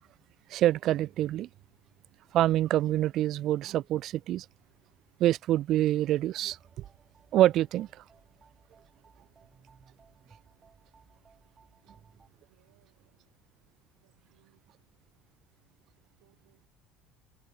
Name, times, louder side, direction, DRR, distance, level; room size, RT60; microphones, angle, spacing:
voice 1, 0.5-1.5 2.3-4.5 5.2-6.6 7.3-7.9, right 13 dB, 60° right, 0.3 m, -26 dB
sound 1, 6.5-12.3, right 5 dB, 30° right, 6.7 m, -61 dB
voice 2, 12.3-13.4 14.0-14.7 16.2-16.7, right 22 dB, 80° right, 7.4 m, -69 dB
hypercardioid pair, 80°, 0 cm